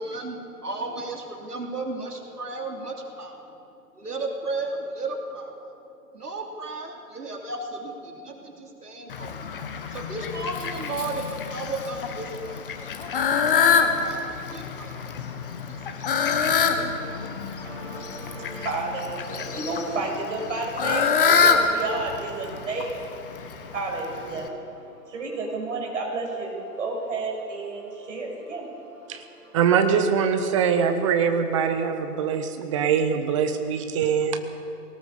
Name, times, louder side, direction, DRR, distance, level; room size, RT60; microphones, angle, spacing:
voice 1, 0.0-3.4 4.0-5.7 6.1-9.5 9.9-12.6 13.1-14.2 14.5-14.9 15.3-15.4 15.7-16.2, right 2 dB, 70° right, 2 dB, 3.2 m, -34 dB
Fowl, 9.1-24.5, left 6 dB, 35° left, 1.5 m, -26 dB
voice 2, 17.6-29.6, right 3 dB, 50° right, 0 dB, 6.4 m, -32 dB
voice 3, 29.5-34.4, right 7 dB, 20° right, 7 dB, 1.1 m, -23 dB
21.0 x 18.5 x 6.9 m, 2.7 s
figure-of-eight pair, 140°, 48 cm